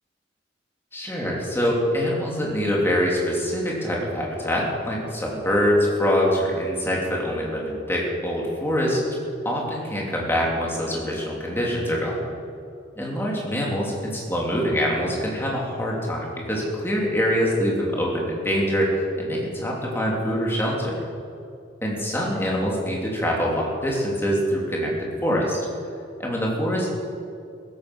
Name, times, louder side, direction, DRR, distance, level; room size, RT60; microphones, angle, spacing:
voice 1, 0.9-9.0 9.4-12.3 13.0-21.0 21.8-25.7 26.2-26.9, equal, 10° left, -3 dB, 3.0 m, -24 dB
15.5 x 14.0 x 6.2 m, 2.5 s
head